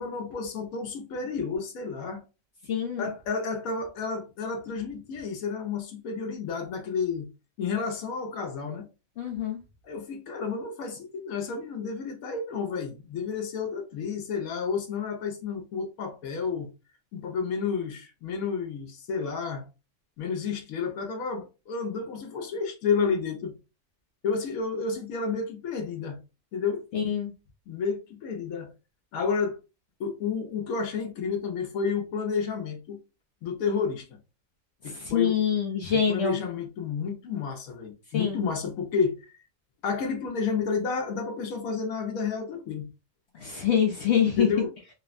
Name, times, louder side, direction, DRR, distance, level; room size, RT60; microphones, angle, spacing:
voice 1, 0.0-2.2 3.0-7.3 7.6-8.9 9.8-16.7 17.1-19.7 20.2-23.6 24.2-26.2 26.5-26.8 27.7-28.7 29.1-29.6 30.0-33.0 33.4-34.2 34.8-35.4 35.9-39.2 39.8-42.9 44.4-44.7, left 5 dB, 85° left, 1.1 m, -31 dB
voice 2, 2.7-3.1 9.2-9.6 26.9-27.3 35.1-36.4 38.1-38.4 43.4-44.5, left 8 dB, 65° left, 0.7 m, -25 dB
3.4 x 2.0 x 2.4 m
omnidirectional pair, 1.4 m